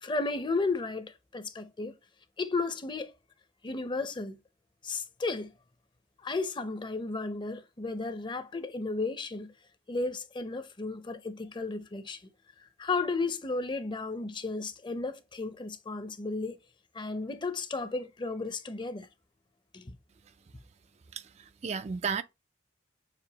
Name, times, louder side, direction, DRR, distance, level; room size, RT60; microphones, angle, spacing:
voice 1, 0.0-1.9 2.4-3.1 3.6-4.4 4.8-5.5 6.2-9.5 9.9-12.2 12.8-16.6 16.9-19.1 19.7-19.9, left 3 dB, 25° left, 0.6 m, -33 dB
voice 2, 21.1-22.2, right 6 dB, 40° right, 0.3 m, -34 dB
6.7 x 2.7 x 2.8 m
head